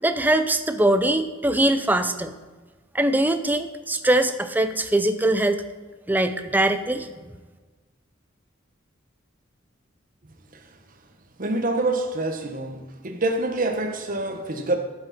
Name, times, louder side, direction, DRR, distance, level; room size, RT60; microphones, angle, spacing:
voice 1, 0.0-2.3 2.9-5.6 6.1-7.1, right 1 dB, 10° right, 0.5 m, -22 dB
voice 2, 11.4-14.8, right 2 dB, 45° right, 1.2 m, -26 dB
11.0 x 7.9 x 4.2 m
head